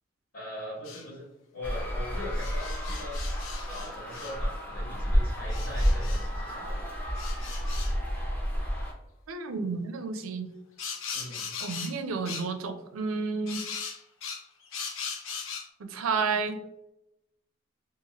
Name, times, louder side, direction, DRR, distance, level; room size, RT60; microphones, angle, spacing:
voice 1, 0.3-1.3 1.5-3.4 3.7-6.8 11.1-11.5, left 1 dB, 55° left, -7 dB, 1.3 m, -41 dB
sound 1, 0.8-1.1 2.3-4.4 5.5-6.2 7.1-8.0 10.8-12.0 12.2-12.5 13.5-15.7, left 6 dB, 70° left, 0.5 m, -39 dB
sound 2, 1.6-8.9, equal, 10° left, 0.5 m, -30 dB
voice 2, 9.3-10.5 11.6-13.6 15.8-16.6, right 4 dB, 90° right, 8 dB, 0.4 m, -31 dB
2.8 x 2.5 x 2.8 m, 0.89 s
head